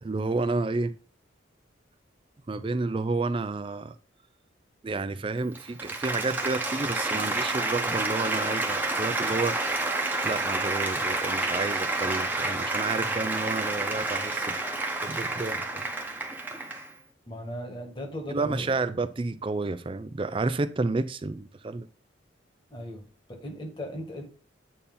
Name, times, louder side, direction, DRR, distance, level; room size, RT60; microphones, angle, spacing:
voice 1, 0.0-1.0 2.5-3.9 4.8-9.6 10.2-14.5 15.0-15.8 18.3-21.9, right 3 dB, 30° right, 0.4 m, -30 dB
Applause, 5.4-17.0, right 2 dB, 10° right, 0.8 m, -29 dB
voice 2, 17.3-18.7 22.7-24.2, equal, 25° left, 1.6 m, -38 dB
8.4 x 2.8 x 5.4 m
head